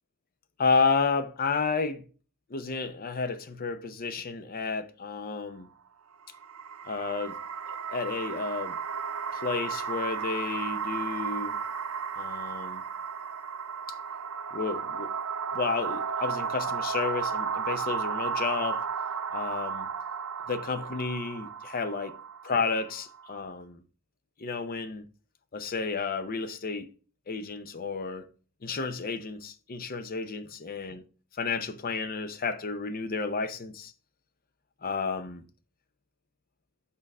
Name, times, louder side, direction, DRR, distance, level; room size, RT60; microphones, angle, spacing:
voice 1, 0.6-2.0 2.5-5.7 6.9-7.4 7.9-8.8 9.3-11.6 12.1-12.8 14.5-15.1 15.5-18.8 19.3-19.9 20.5-22.1 22.4-23.8 24.4-25.1 25.5-26.9 27.3-28.3 28.6-31.0 31.3-33.9 34.8-35.4, left 4 dB, 45° left, 0.6 m, -31 dB
sound 1, 6.2-23.4, right 6 dB, 80° right, 0.6 m, -34 dB
6.4 x 3.7 x 5.3 m
head